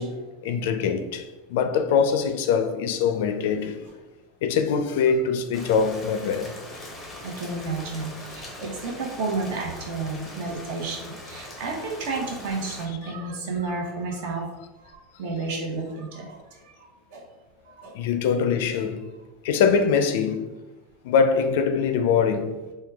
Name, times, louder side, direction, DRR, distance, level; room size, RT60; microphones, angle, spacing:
voice 1, 0.0-3.8 4.4-6.6 10.9-11.0 12.9-13.0 17.9-19.1 19.4-20.5 21.0-22.6, left 6 dB, 65° left, 0.4 m, -23 dB
Rain, 5.5-12.9, left 1 dB, 10° left, 0.6 m, -41 dB
voice 2, 7.2-14.5 14.8-17.2 17.7-17.9, right 3 dB, 60° right, 0.9 m, -32 dB
4.6 x 2.2 x 3.4 m
supercardioid pair, 175°, 0 cm